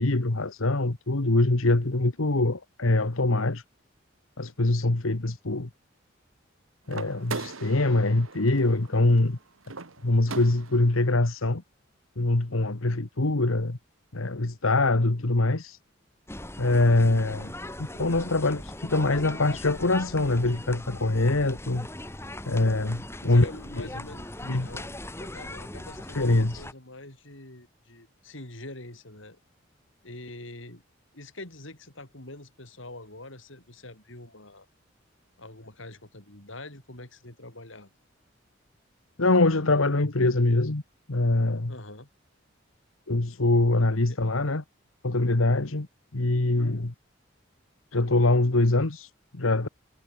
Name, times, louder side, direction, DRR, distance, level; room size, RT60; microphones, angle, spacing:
voice 1, 0.0-3.6 4.4-5.7 6.9-9.4 10.0-11.6 12.2-13.8 14.1-15.8 16.6-17.5 17.8-21.9 22.4-23.4 24.4-24.7 26.1-26.6 39.2-40.8 41.1-41.7 43.1-44.6 45.0-45.9 46.1-46.9 47.9-49.7, left 2 dB, 90° left, 1.5 m, -24 dB
sound 1, 6.9-11.0, right 4 dB, 85° right, 1.7 m, -40 dB
sound 2, 16.3-26.7, left 1 dB, 10° left, 4.6 m, -40 dB
voice 2, 23.3-29.4 30.0-30.8 31.1-34.7 35.4-38.0 41.7-42.1 44.1-44.2, left 2 dB, 70° left, 6.6 m, -44 dB
head